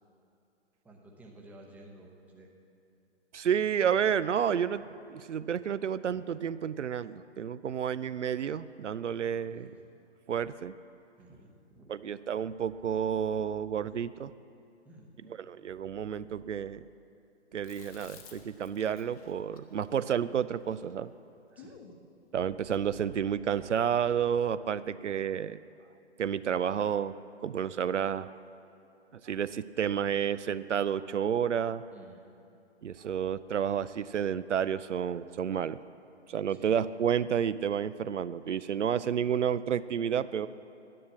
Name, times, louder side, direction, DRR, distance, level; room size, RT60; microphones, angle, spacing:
voice 1, 0.8-2.5 9.3-9.7 11.2-12.0 14.8-15.4 21.6-21.8 31.9-32.4 36.5-36.8, right 1 dB, 5° right, -1 dB, 0.8 m, -54 dB
voice 2, 3.3-4.8 5.1-9.7 10.3-10.7 11.9-14.3 15.5-16.8 17.5-21.1 22.3-25.6 26.2-27.1 27.4-28.3 29.1-31.8 32.8-35.8 36.3-40.5, right 8 dB, 85° right, 15 dB, 0.5 m, -30 dB
Chewing mastication, 17.6-22.0, left 5 dB, 30° left, 1.1 m, -55 dB
11.0 x 10.0 x 7.4 m, 2.6 s
figure-of-eight pair, 135°, 35 cm